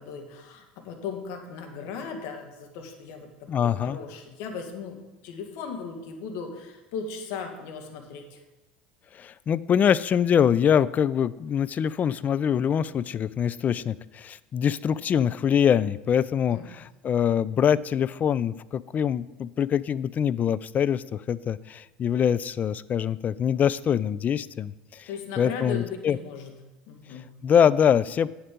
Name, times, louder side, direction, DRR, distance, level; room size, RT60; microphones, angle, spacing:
voice 1, 0.0-5.0 5.2-8.4 16.5-16.7 25.1-26.5 26.9-27.3, left 5 dB, 60° left, 4 dB, 1.8 m, -37 dB
voice 2, 3.5-4.0 9.1-25.1 25.4-26.2 27.4-28.3, left 8 dB, 35° left, 18 dB, 0.4 m, -24 dB
8.7 x 7.7 x 5.2 m, 1.1 s
hypercardioid pair, 75°, 5 cm